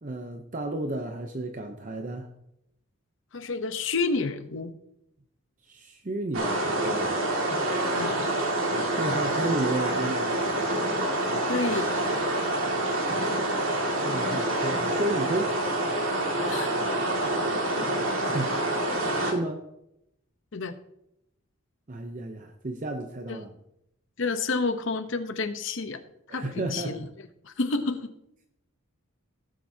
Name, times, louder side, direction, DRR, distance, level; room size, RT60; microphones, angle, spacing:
voice 1, 0.0-2.3 5.7-7.2 9.0-10.4 14.0-15.6 18.3-18.5 19.2-19.7 21.9-23.5 26.3-27.1, right 2 dB, 35° right, 5 dB, 0.7 m, -32 dB
voice 2, 3.3-4.7 7.9-8.2 11.5-11.9 16.5-16.7 20.5-20.8 23.3-23.4 24.2-26.0 26.3-28.1, left 3 dB, 60° left, 9 dB, 0.8 m, -30 dB
sound 1, 6.3-19.3, right 1 dB, 65° right, 2.1 m, -27 dB
17.5 x 7.4 x 2.8 m, 0.81 s
head